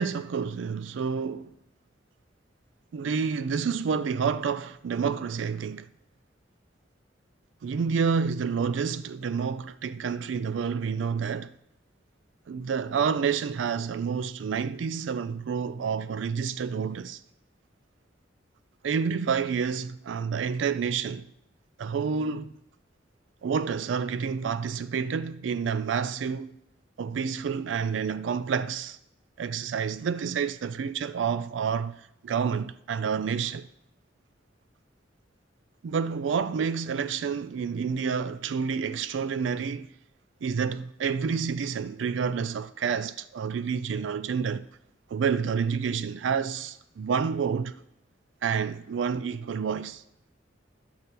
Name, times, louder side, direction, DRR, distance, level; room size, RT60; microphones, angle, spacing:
voice 1, 0.0-1.5 2.9-5.9 7.6-11.5 12.5-17.2 18.8-21.3 21.8-22.5 23.4-26.5 27.0-29.0 29.4-33.7 35.8-39.9 40.4-44.7 45.1-47.7 48.4-50.0, right 6 dB, 90° right, 0.4 m, -29 dB
11.0 x 5.7 x 6.7 m
head